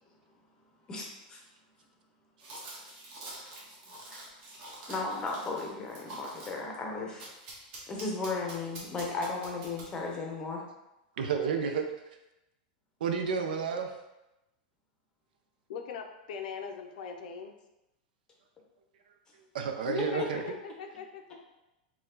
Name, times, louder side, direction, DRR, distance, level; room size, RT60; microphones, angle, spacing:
voice 1, 0.9-1.4 4.1-4.3 4.9-7.3 7.9-10.6, left 3 dB, 15° left, -1 dB, 0.7 m, -35 dB
sound 1, 2.4-6.6 7.2-10.1, right 1 dB, 40° right, 1.2 m, -46 dB
voice 2, 11.2-11.9 13.0-14.0 19.5-20.4, right 6 dB, 80° right, 5 dB, 0.6 m, -30 dB
voice 3, 15.7-17.5 19.8-21.0 21.3-21.4, left 6 dB, 65° left, 4 dB, 0.5 m, -39 dB
4.5 x 2.3 x 3.7 m, 0.95 s
supercardioid pair, 160°, 5 cm